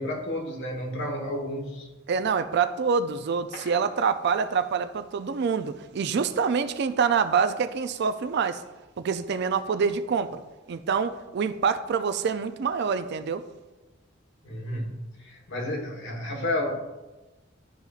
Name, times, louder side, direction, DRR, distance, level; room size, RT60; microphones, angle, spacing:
voice 1, 0.0-1.9 14.4-16.7, left 1 dB, 65° left, 2 dB, 1.2 m, -31 dB
voice 2, 2.1-8.6 9.0-10.4 10.7-13.4, right 6 dB, 60° right, 11 dB, 0.4 m, -26 dB
sound 1, 3.2-5.0 5.2-5.3 5.8-5.9, left 1 dB, 40° left, 1.5 m, -46 dB
11.5 x 4.1 x 2.4 m, 1.1 s
head